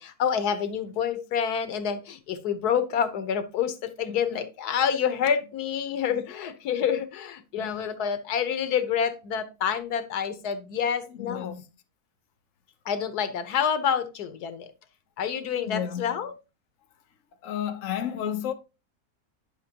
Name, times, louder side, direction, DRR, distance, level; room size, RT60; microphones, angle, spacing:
voice 1, 0.0-11.5 12.8-14.7 15.2-16.3, left 7 dB, 90° left, 1.4 m, -28 dB
voice 2, 4.1-4.4 6.1-6.2 7.6-7.8 11.1-11.6 15.7-16.2 17.4-18.5, left 9 dB, 60° left, 1.1 m, -32 dB
10.0 x 5.8 x 2.8 m
omnidirectional pair, 1.6 m